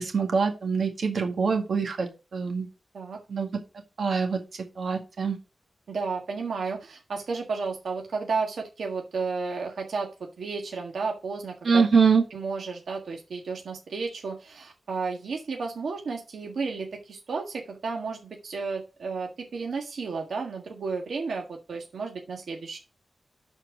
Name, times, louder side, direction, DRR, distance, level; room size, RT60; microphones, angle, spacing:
voice 1, 0.0-2.7 3.3-3.5 4.0-4.4 4.8-5.4 11.6-12.2, right 5 dB, 70° right, 4 dB, 1.9 m, -24 dB
voice 2, 5.9-12.1 12.3-22.8, right 4 dB, 90° right, 1 dB, 1.6 m, -32 dB
11.5 x 4.5 x 4.7 m, 0.30 s
wide cardioid pair, 100°, 0 cm